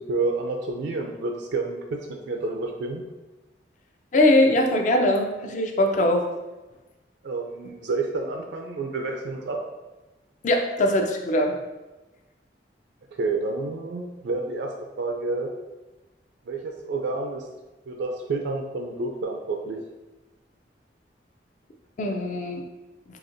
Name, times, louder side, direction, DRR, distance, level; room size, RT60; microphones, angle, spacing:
voice 1, 0.0-3.0 7.2-9.6 13.2-15.5 16.5-17.5 17.9-19.8, right 3 dB, 70° right, 2 dB, 0.4 m, -29 dB
voice 2, 4.1-6.3 10.4-11.5 22.0-22.6, left 1 dB, 45° left, 4 dB, 0.4 m, -21 dB
4.1 x 2.8 x 2.5 m, 1.1 s
head